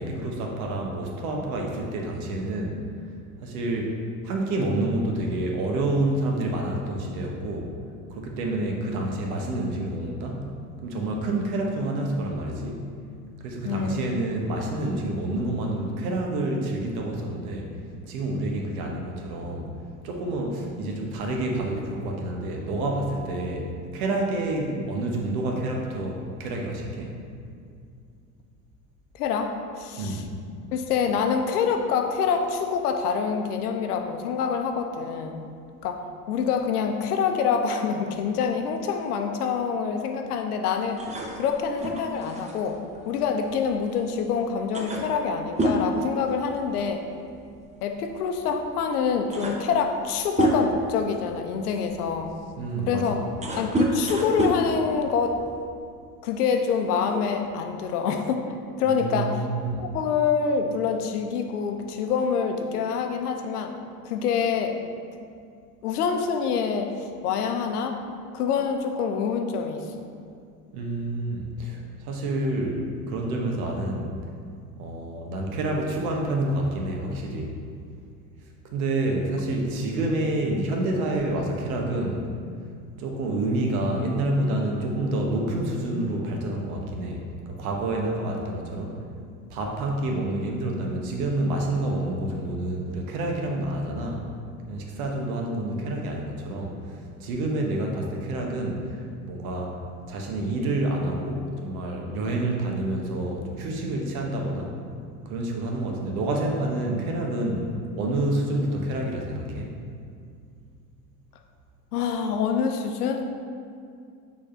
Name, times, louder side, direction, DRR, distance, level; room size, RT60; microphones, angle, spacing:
voice 1, 0.0-2.8 3.4-4.0 4.2-7.7 8.1-10.5 10.8-12.8 13.4-17.7 18.1-19.7 20.0-27.1 30.0-30.2 52.6-53.3 58.8-59.8 70.7-74.1 74.8-77.5 78.6-82.3 83.0-89.0 89.5-94.2 94.7-99.0 99.3-99.7 100.1-104.7 105.2-109.7, right 1 dB, 65° right, 0 dB, 1.1 m, -28 dB
voice 2, 13.6-14.1 29.2-30.2 30.7-35.4 35.8-36.0 36.3-41.0 41.4-47.0 47.8-52.3 52.8-53.2 53.6-55.4 56.2-59.4 59.8-63.7 64.0-64.8 65.8-68.0 68.3-70.1 111.9-113.2, left 6 dB, 70° left, 5 dB, 0.7 m, -26 dB
sound 1, 41.0-44.0 44.3-44.4 44.7-46.9 47.2-47.5 48.4-48.5 49.0-50.9 51.5-55.6, right 1 dB, 15° right, 0.8 m, -28 dB
6.4 x 3.7 x 4.4 m, 2.3 s
figure-of-eight pair, 75°, 46 cm